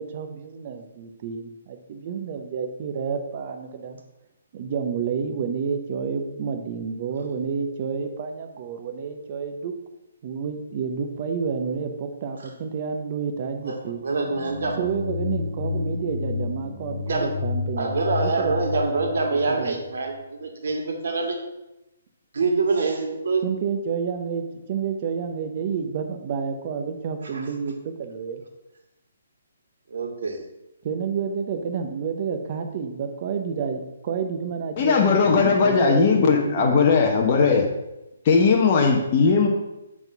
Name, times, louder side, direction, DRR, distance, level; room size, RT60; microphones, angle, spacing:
voice 1, 0.0-4.0 4.5-9.7 10.2-14.0 14.8-17.9 18.2-19.2 19.5-19.7 23.4-28.4 30.8-36.8, right 6 dB, 35° right, 6 dB, 0.8 m, -30 dB
voice 2, 14.0-14.8 17.0-17.3 17.8-21.4 22.3-23.4 27.3-27.4 29.9-30.4, right 3 dB, 65° right, 2 dB, 1.8 m, -25 dB
sound 1, 14.2-20.2, left 4 dB, 50° left, 2.2 m, -31 dB
voice 3, 34.8-37.7 38.2-39.5, left 5 dB, 30° left, 0 dB, 0.9 m, -18 dB
8.0 x 3.7 x 6.0 m, 0.94 s
hypercardioid pair, 165°, 0 cm